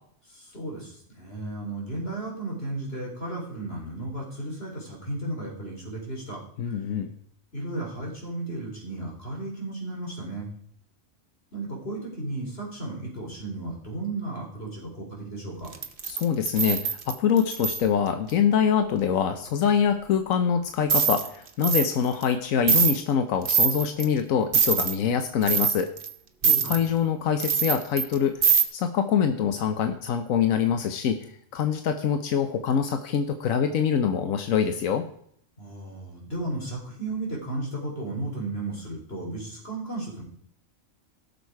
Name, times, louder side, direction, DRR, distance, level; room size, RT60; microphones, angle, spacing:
voice 1, 0.3-6.4 6.7-6.8 7.5-10.5 11.5-15.7 26.4-26.9 35.6-40.2, right 2 dB, 50° left, -1 dB, 3.9 m, -34 dB
voice 2, 6.6-7.1 16.0-25.9 26.6-35.1, left 7 dB, 85° left, 8 dB, 1.2 m, -25 dB
sound 1, 15.7-17.8 20.9-21.3 21.6-21.9 22.2-22.3 22.7-23.0 23.5-24.1 24.5-25.0 25.4-26.1 26.4-26.8 27.4-28.1 28.4-28.6, right 6 dB, 45° right, 1.0 m, -23 dB
16.0 x 6.7 x 4.6 m, 0.65 s
omnidirectional pair, 1.4 m